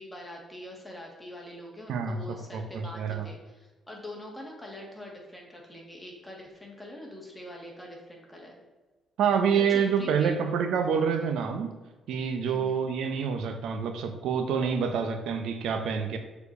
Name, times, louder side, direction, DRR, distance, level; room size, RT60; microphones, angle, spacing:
voice 1, 0.0-8.5 9.7-10.3 12.4-12.8, left 1 dB, 10° left, -2 dB, 2.8 m, -44 dB
voice 2, 1.9-3.3 9.2-11.8 12.1-16.2, right 6 dB, 80° right, 7 dB, 0.9 m, -27 dB
6.9 x 4.7 x 6.9 m, 1.2 s
cardioid pair, 90°, 0 cm